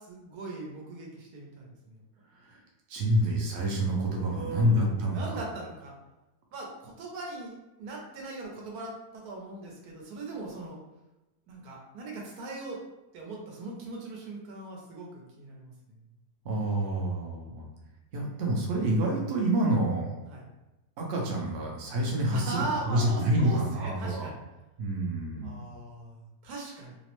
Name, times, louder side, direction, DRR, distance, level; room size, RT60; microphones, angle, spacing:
voice 1, 0.1-2.0 4.3-5.9 6.5-10.8 11.5-12.8 13.1-15.1 15.4-15.7 20.3-20.4 22.3-24.4 25.4-27.0, right 2 dB, 80° right, -1 dB, 1.2 m, -39 dB
voice 2, 2.9-5.4 16.4-17.6 18.1-20.2 21.0-24.3 24.8-25.6, right 1 dB, 60° right, -1 dB, 0.7 m, -28 dB
2.9 x 2.0 x 2.9 m, 1.0 s
omnidirectional pair, 1.6 m